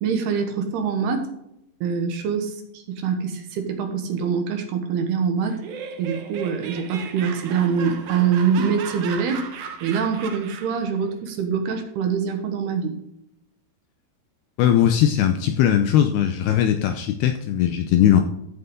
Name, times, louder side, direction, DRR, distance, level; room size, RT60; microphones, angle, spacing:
voice 1, 0.0-1.3 1.8-5.6 6.0-9.5 9.8-12.9, right 6 dB, 70° right, 5 dB, 3.0 m, -24 dB
Laughter, 5.4-10.9, right 7 dB, 90° right, 1.6 m, -36 dB
voice 2, 14.6-18.2, left 10 dB, 80° left, 6 dB, 2.4 m, -19 dB
14.0 x 7.7 x 3.7 m, 0.80 s
omnidirectional pair, 5.4 m